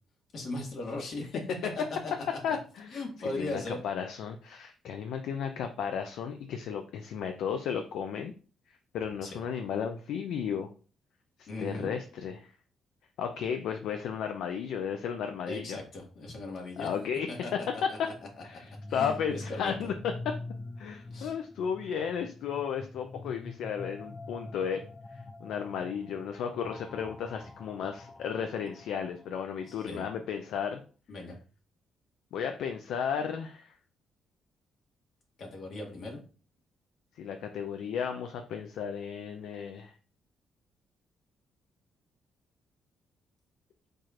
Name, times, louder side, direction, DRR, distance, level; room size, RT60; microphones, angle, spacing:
voice 1, 0.3-1.4 1.7-1.8 2.5-2.6 2.9-3.8 9.2-9.3 11.5-11.9 15.5-16.9 17.3-17.5 18.0-18.1 18.9-19.9 21.1-21.3 23.2-23.3 29.7-30.0 31.1-31.4 35.4-36.2, left 2 dB, 65° left, 0 dB, 1.7 m, -38 dB
voice 2, 2.4-8.3 8.7-10.7 11.4-12.5 13.2-15.8 16.8-17.4 17.8-18.1 18.4-19.9 20.8-24.8 25.1-30.8 32.3-33.8 37.2-39.9, left 7 dB, 80° left, 6 dB, 0.5 m, -34 dB
sound 1, 18.5-30.4, left 2 dB, 25° left, 0.4 m, -45 dB
4.7 x 4.4 x 2.5 m, 0.37 s
cardioid pair, 90°, 0 cm